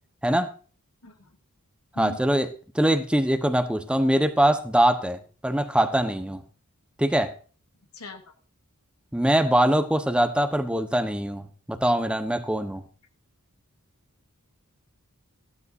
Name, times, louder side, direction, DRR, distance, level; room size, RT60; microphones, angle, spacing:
voice 1, 1.0-1.4 1.9-2.2 7.9-8.2, left 3 dB, 85° left, 5 dB, 2.9 m, -40 dB
voice 2, 2.0-2.5 2.7-6.4 7.0-7.3 9.1-12.8, right 1 dB, 5° right, 8 dB, 1.1 m, -23 dB
16.0 x 12.5 x 2.7 m, 0.38 s
head